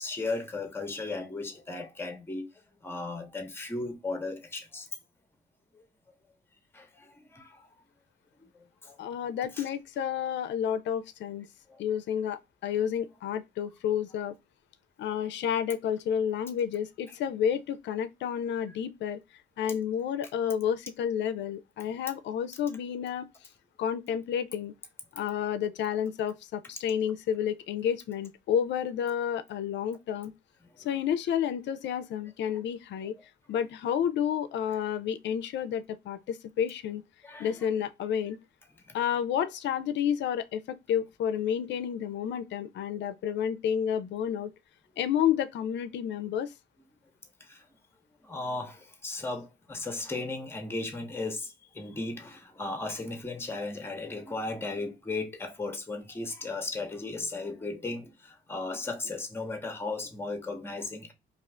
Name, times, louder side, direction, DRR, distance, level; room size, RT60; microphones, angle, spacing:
voice 1, 0.0-2.5 2.8-4.9 5.7-5.8 6.7-7.7 8.4-9.0 9.6-9.7 11.7-11.8 30.8-30.9 37.2-37.7 38.9-39.0 47.4-47.7 48.2-61.1, left 3 dB, 10° left, 0.7 m, -36 dB
voice 2, 9.0-11.5 11.8-14.3 15.0-19.2 19.6-23.3 23.8-24.7 25.1-30.3 30.8-33.1 33.5-37.0 37.4-38.4 38.9-44.5 45.0-46.5, left 9 dB, 65° left, 0.4 m, -30 dB
2.4 x 2.4 x 3.2 m
cardioid pair, 90°, 20 cm